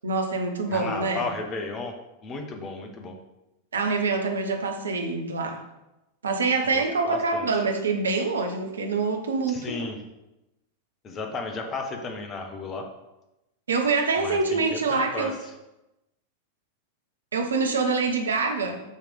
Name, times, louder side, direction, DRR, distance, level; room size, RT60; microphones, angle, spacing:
voice 1, 0.0-1.3 3.7-5.6 6.2-9.8 13.7-15.3 17.3-18.8, right 4 dB, 70° right, 4 dB, 0.9 m, -25 dB
voice 2, 0.7-1.9 2.2-3.2 6.7-7.6 9.5-10.0 11.0-12.9 14.2-15.3, left 3 dB, 25° left, 4 dB, 1.0 m, -34 dB
6.5 x 3.3 x 5.3 m, 0.94 s
figure-of-eight pair, 90°, 0 cm